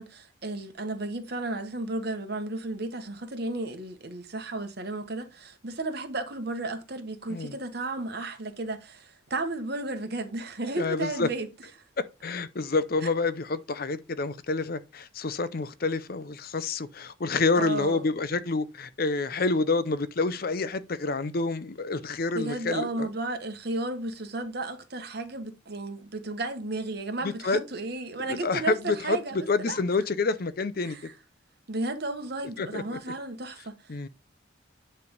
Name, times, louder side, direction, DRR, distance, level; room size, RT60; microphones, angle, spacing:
voice 1, 0.0-11.5 17.6-18.0 22.3-29.8 30.8-31.1 31.7-33.7, right 2 dB, 55° right, 1.3 m, -33 dB
voice 2, 10.8-11.3 12.0-23.1 27.2-27.6 28.3-31.0 32.6-33.0 33.9-34.1, left 3 dB, 50° left, 0.6 m, -28 dB
9.5 x 3.3 x 5.3 m
head